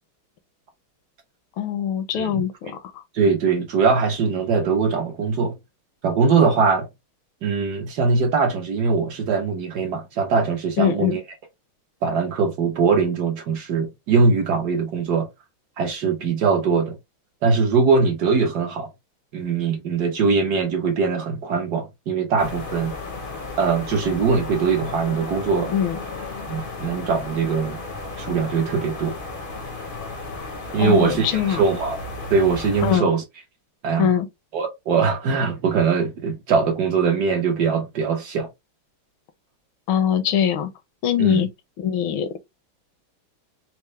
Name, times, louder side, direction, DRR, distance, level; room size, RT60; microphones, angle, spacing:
voice 1, 1.6-3.0 10.8-11.2 25.7-26.0 30.8-31.6 32.8-33.1 34.0-34.3 39.9-40.7 41.0-41.5 41.8-42.4, left 9 dB, 80° left, 1.4 m, -22 dB
voice 2, 3.1-5.6 6.0-6.9 7.4-11.2 12.0-15.3 15.8-17.0 17.4-18.9 19.3-22.9 23.6-25.7 26.5-27.8 28.2-29.2 30.7-32.0 32.3-33.2 33.8-34.1 34.5-38.5 41.2-41.4, right 5 dB, 65° right, 1.1 m, -21 dB
sound 1, 22.4-33.0, left 3 dB, 55° left, 0.5 m, -34 dB
4.3 x 2.0 x 3.1 m
omnidirectional pair, 2.2 m